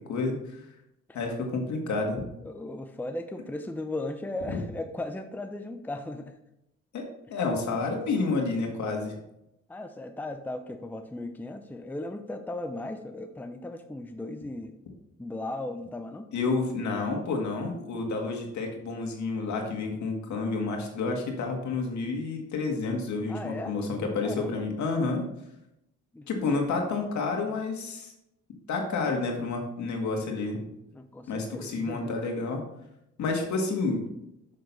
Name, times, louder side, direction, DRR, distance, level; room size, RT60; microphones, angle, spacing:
voice 1, 0.1-0.6 1.1-2.2 4.5-4.6 6.9-7.0 7.3-9.1 16.3-25.2 26.3-28.1 28.7-30.6 31.3-32.6 33.2-34.0, left 3 dB, 70° left, 2 dB, 2.0 m, -29 dB
voice 2, 2.4-6.4 9.7-14.8 15.2-16.3 23.3-23.7 24.2-24.6 26.1-26.6 30.9-32.1 33.4-33.5, left 2 dB, 5° left, 6 dB, 0.6 m, -37 dB
6.8 x 6.4 x 4.1 m, 0.84 s
cardioid pair, 90°, 30 cm